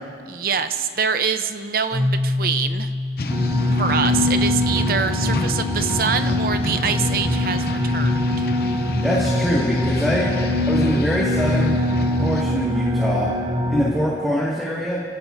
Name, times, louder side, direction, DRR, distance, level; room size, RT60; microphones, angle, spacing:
voice 1, 0.3-2.9 3.8-8.5, right 6 dB, 55° right, 9 dB, 0.8 m, -25 dB
Keyboard (musical), 1.9-5.6, left 2 dB, 75° right, 2.9 m, -27 dB
sound 1, 3.2-12.4, left 2 dB, 55° left, 0.8 m, -29 dB
sound 2, 3.3-13.9, left 1 dB, 30° right, 2.3 m, -23 dB
voice 2, 9.0-10.3 10.7-11.8 12.2-13.3 13.7-15.0, equal, ahead, -6 dB, 2.1 m, -23 dB
29.0 x 16.5 x 2.7 m, 2.4 s
head